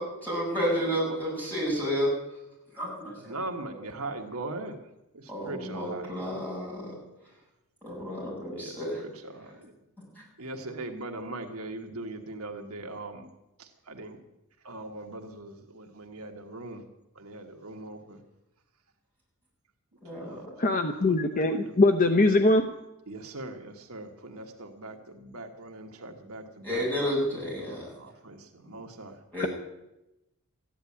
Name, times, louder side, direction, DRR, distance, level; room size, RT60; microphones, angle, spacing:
voice 1, 0.0-2.2 2.8-3.3 3.7-3.8 5.3-7.0 7.8-9.0 20.0-20.5 26.6-27.9 29.3-29.5, equal, 10° left, -5 dB, 7.8 m, -31 dB
voice 2, 3.2-4.8 5.1-6.5 8.5-9.7 10.4-13.3 13.6-14.2 14.6-16.8 17.1-18.2 20.2-21.7 23.1-29.2, right 2 dB, 70° right, 3 dB, 1.5 m, -41 dB
voice 3, 20.6-22.7 29.4-29.5, left 2 dB, 40° left, 6 dB, 0.8 m, -22 dB
14.5 x 10.5 x 8.6 m, 0.92 s
head